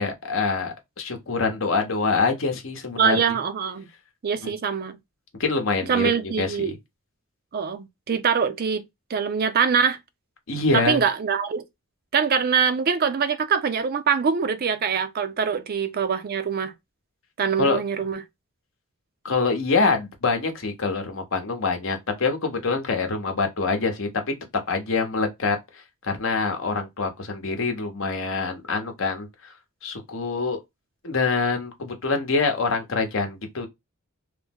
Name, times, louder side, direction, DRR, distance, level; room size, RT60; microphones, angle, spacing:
voice 1, 0.0-3.4 4.4-4.5 5.4-6.7 10.5-11.0 17.6-17.8 19.2-24.1 24.7-29.5 29.8-30.6 31.0-33.7, left 4 dB, 65° left, 0.9 m, -25 dB
voice 2, 3.0-3.9 4.2-5.0 5.9-6.7 7.5-8.8 9.1-10.0 10.7-11.6 12.1-16.7 17.4-18.2, right 6 dB, 45° right, 0.4 m, -23 dB
3.2 x 2.0 x 3.4 m
head